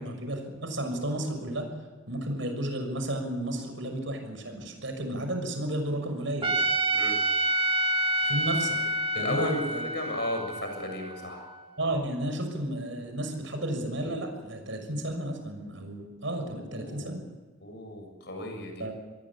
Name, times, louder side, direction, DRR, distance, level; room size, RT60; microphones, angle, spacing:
voice 1, 0.0-1.7 2.1-6.6 8.2-8.8 9.2-9.8 11.8-17.2 18.8-18.9, right 1 dB, 70° right, 6 dB, 6.2 m, -32 dB
Trumpet, 6.4-11.6, right 1 dB, 25° right, 1.6 m, -28 dB
voice 2, 9.1-11.5 16.5-17.1 17.6-18.8, left 1 dB, 55° left, 4 dB, 7.1 m, -34 dB
27.5 x 21.0 x 8.7 m, 1.3 s
head